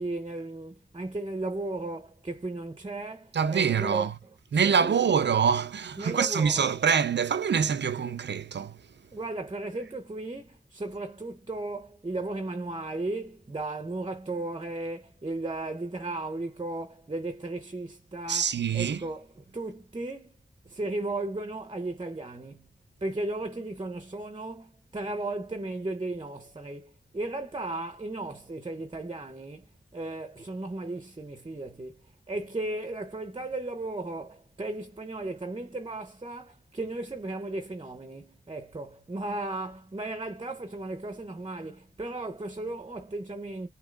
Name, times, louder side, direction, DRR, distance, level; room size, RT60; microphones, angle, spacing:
voice 1, 0.0-4.1 4.6-5.0 6.0-6.7 9.1-20.4 20.6-22.7 23.0-32.0 32.3-43.7, right 2 dB, 25° right, 0.8 m, -35 dB
voice 2, 3.3-4.1 4.5-8.8 18.3-19.0, right 7 dB, 75° right, 0.6 m, -25 dB
6.3 x 3.0 x 2.4 m
wide cardioid pair, 85°, 18 cm